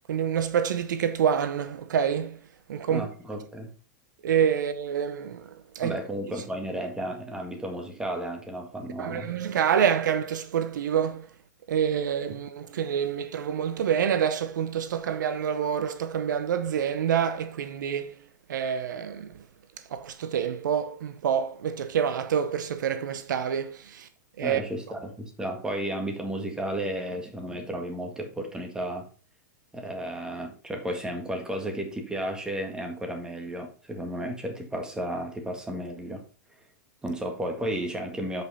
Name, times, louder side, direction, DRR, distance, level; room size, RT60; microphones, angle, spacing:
voice 1, 0.1-2.4 2.7-3.1 4.2-6.0 9.0-11.3 11.7-18.1 18.5-19.4 19.9-24.1 24.4-24.6, right 8 dB, 80° right, 0.8 m, -27 dB
voice 2, 2.9-3.7 5.8-9.3 24.4-29.1 29.7-36.2 37.0-38.4, right 1 dB, 5° right, 1.8 m, -33 dB
7.8 x 5.3 x 4.3 m
hypercardioid pair, 125°, 10 cm